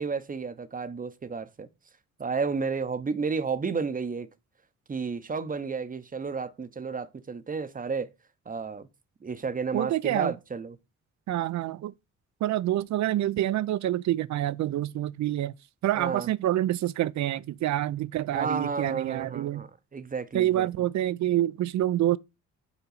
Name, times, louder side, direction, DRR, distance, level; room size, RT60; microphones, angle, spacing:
voice 1, 0.0-1.7 2.2-4.3 4.9-8.1 8.5-8.9 9.2-10.8 16.0-16.3 18.3-20.7, right 5 dB, 25° right, 0.7 m, -32 dB
voice 2, 9.7-10.3 11.3-11.9 12.4-15.5 15.8-19.7 20.3-22.2, right 13 dB, 65° right, 0.4 m, -27 dB
7.0 x 4.5 x 4.0 m
cardioid pair, 75°, 31 cm